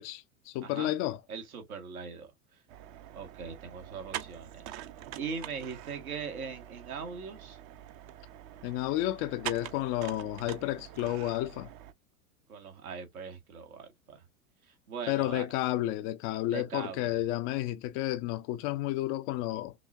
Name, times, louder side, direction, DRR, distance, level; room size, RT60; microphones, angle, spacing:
voice 1, 0.0-1.2 8.6-11.7 15.1-19.7, left 15 dB, 35° left, 0.4 m, -31 dB
voice 2, 0.6-0.9 1.3-2.6 3.1-4.7 5.2-7.6 12.5-14.2 14.7-15.5 16.5-17.2, right 6 dB, 80° right, 1.6 m, -41 dB
sound 1, 2.7-11.9, right 12 dB, 40° right, 0.6 m, -45 dB
5.8 x 2.2 x 2.5 m
hypercardioid pair, 90°, 43 cm